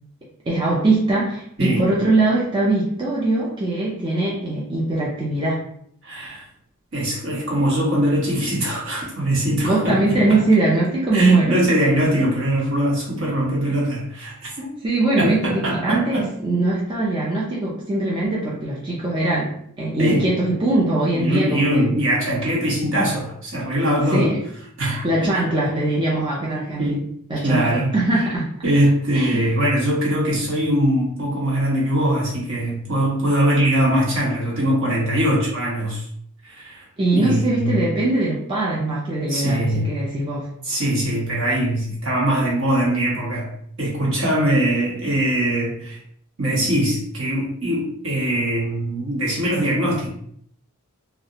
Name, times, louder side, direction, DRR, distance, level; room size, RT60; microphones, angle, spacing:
voice 1, 0.5-5.6 9.6-11.6 14.8-22.0 24.1-24.4 25.0-27.0 27.3-28.5 29.1-29.5 37.0-40.5, right 2 dB, 20° right, -6 dB, 0.4 m, -21 dB
voice 2, 6.0-6.4 6.9-10.0 10.3-10.4 11.1-14.7 15.2-16.3 20.0-20.2 21.1-24.3 24.8-25.1 26.8-27.0 27.4-28.2 28.6-36.1 36.4-36.8 37.1-37.8 39.3-39.9 40.6-43.5 43.8-46.0 46.4-50.1, right 1 dB, 60° right, -4 dB, 0.9 m, -21 dB
2.4 x 2.0 x 2.7 m, 0.65 s
head